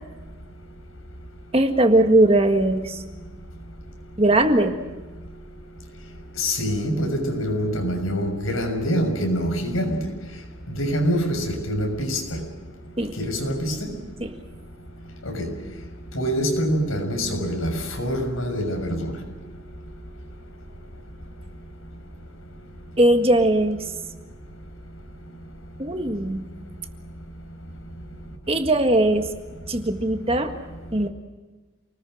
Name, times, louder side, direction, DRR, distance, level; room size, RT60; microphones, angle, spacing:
voice 1, 1.5-3.0 4.2-4.8 13.0-13.1 14.2-14.4 23.0-23.9 25.8-26.5 28.5-29.3 29.7-30.5 30.9-31.1, right 1 dB, 25° right, 6 dB, 1.7 m, -19 dB
voice 2, 6.4-10.0 10.8-12.2 13.2-13.7 15.3-15.4 16.1-17.7 18.0-19.1, equal, 80° left, 4 dB, 6.5 m, -25 dB
29.0 x 20.5 x 6.4 m, 1.3 s
head